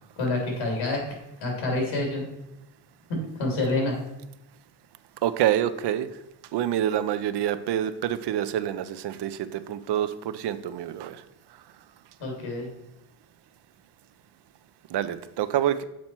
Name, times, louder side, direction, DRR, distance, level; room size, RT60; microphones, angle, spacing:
voice 1, 0.2-1.0 1.4-2.2 3.4-3.9 12.2-12.7, left 2 dB, 85° left, 0 dB, 2.9 m, -27 dB
voice 2, 5.2-6.1 6.5-11.2 14.9-15.8, right 11 dB, 60° right, 13 dB, 0.5 m, -27 dB
7.5 x 4.3 x 4.4 m, 0.87 s
cardioid pair, 100°, 46 cm